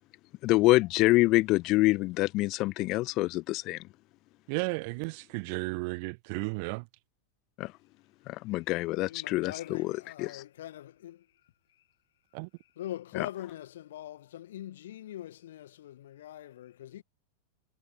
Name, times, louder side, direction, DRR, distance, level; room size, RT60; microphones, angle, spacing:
voice 1, 0.4-3.9 7.6-7.7 8.3-9.9 10.2-10.4 13.2-13.3, left 20 dB, 40° left, 1.4 m, -26 dB
voice 2, 4.5-6.8 12.3-12.5, right 33 dB, 45° right, 0.7 m, -33 dB
voice 3, 9.0-11.3 11.7-11.8 12.6-17.0, left 12 dB, 60° left, 2.1 m, -42 dB
figure-of-eight pair, 90°, 0 cm